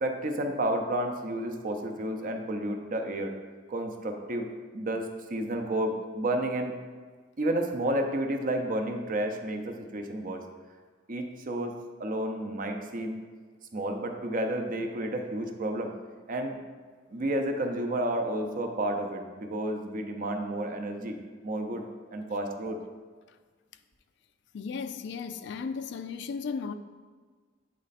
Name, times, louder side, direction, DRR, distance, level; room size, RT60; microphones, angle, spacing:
voice 1, 0.0-3.3 3.7-4.5 4.7-6.7 7.4-10.4 11.1-13.2 13.7-15.9 16.3-16.6 17.1-21.2 21.4-21.9 22.1-22.8, right 1 dB, 45° right, 0.6 m, -31 dB
voice 2, 24.5-26.7, left 5 dB, 65° left, 0.3 m, -35 dB
8.2 x 3.2 x 4.1 m
head